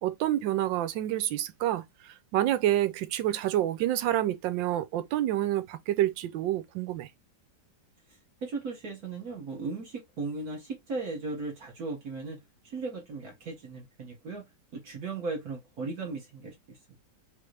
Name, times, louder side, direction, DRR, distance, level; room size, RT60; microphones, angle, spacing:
voice 1, 0.0-7.1, right 13 dB, 85° right, 1.4 m, -28 dB
voice 2, 8.4-12.4 12.6-14.5 14.7-17.0, right 3 dB, 55° right, 2.1 m, -37 dB
4.1 x 3.4 x 3.3 m
omnidirectional pair, 2.0 m